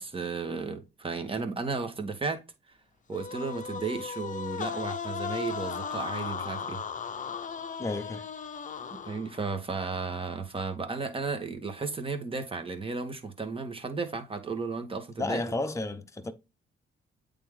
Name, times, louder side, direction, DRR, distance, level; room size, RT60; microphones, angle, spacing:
voice 1, 0.0-2.4 3.1-6.8 8.9-15.4, right 4 dB, 25° right, 1.5 m, -34 dB
sound 1, 3.1-9.5, left 6 dB, 40° left, 0.7 m, -36 dB
voice 2, 7.8-8.2 15.2-16.3, left 2 dB, 15° left, 0.9 m, -32 dB
8.2 x 3.6 x 3.7 m
cardioid pair, 90°, 20 cm